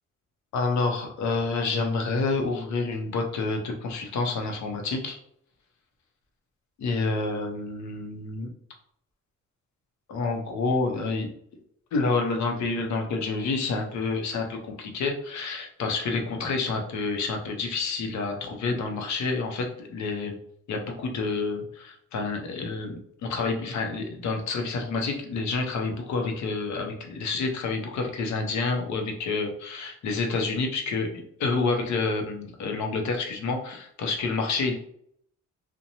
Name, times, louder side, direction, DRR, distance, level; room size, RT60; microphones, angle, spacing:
voice 1, 0.5-5.2 6.8-8.5 10.1-11.3 11.9-20.4 20.7-34.7, left 3 dB, 65° left, 3 dB, 0.7 m, -28 dB
2.8 x 2.1 x 2.7 m, 0.68 s
cardioid pair, 90°, 30 cm